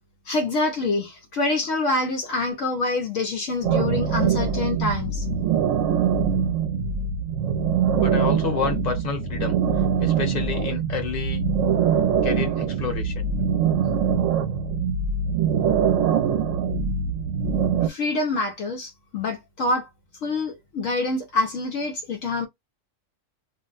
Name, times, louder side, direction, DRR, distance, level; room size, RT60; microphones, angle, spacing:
voice 1, 0.3-5.3 17.8-19.9 20.2-22.5, left 2 dB, 70° left, 0.9 m, -26 dB
sound 1, 3.6-17.9, right 7 dB, 70° right, 0.9 m, -23 dB
voice 2, 8.0-9.6 10.0-11.4 12.2-13.3, left 5 dB, 35° left, 1.0 m, -29 dB
2.5 x 2.0 x 3.9 m
omnidirectional pair, 1.4 m